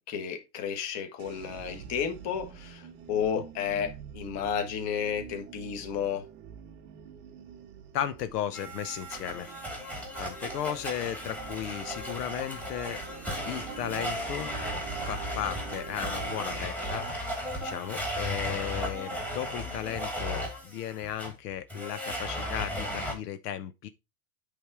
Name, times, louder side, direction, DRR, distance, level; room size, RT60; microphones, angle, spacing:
voice 1, 0.1-6.2, left 8 dB, 35° left, 1.4 m, -32 dB
sound 1, 1.2-16.7, right 8 dB, 25° right, 0.6 m, -46 dB
voice 2, 7.9-9.5 10.2-13.0 13.4-14.5 15.0-17.0 17.6-23.9, left 10 dB, 75° left, 0.9 m, -35 dB
Domestic sounds home sounds, 8.5-23.1, equal, 5° left, 1.6 m, -35 dB
8.7 x 3.6 x 4.7 m
supercardioid pair, 160°, 47 cm